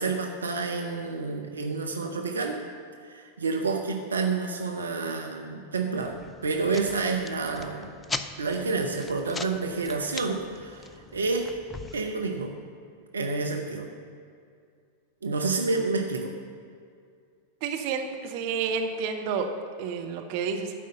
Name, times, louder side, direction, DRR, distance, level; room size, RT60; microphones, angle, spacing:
voice 1, 0.0-2.6 3.0-7.9 8.4-11.5 11.9-12.5 13.1-13.9 15.2-16.3, right 4 dB, 75° right, 3 dB, 0.7 m, -29 dB
sound 1, 6.0-12.1, left 3 dB, 15° left, 0.4 m, -40 dB
voice 2, 17.6-19.5 19.8-20.7, right 6 dB, 45° right, 4 dB, 0.9 m, -30 dB
12.0 x 5.2 x 6.6 m, 2.3 s
figure-of-eight pair, 90°, 0 cm